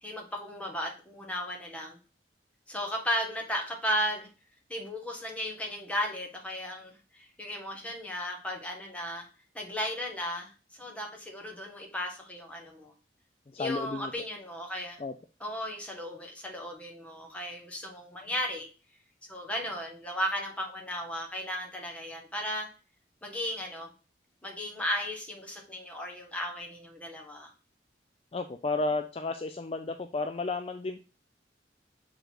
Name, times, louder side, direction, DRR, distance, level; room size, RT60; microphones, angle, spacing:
voice 1, 0.0-2.0 2.7-4.3 4.7-9.3 9.5-10.5 10.8-12.9 13.6-15.0 15.4-18.7 19.3-22.7 23.2-23.9 24.4-27.5, equal, 5° left, 0 dB, 1.4 m, -35 dB
voice 2, 13.5-14.1 15.0-15.1 28.3-31.0, left 3 dB, 30° left, 7 dB, 0.4 m, -32 dB
6.5 x 3.9 x 4.6 m, 0.34 s
head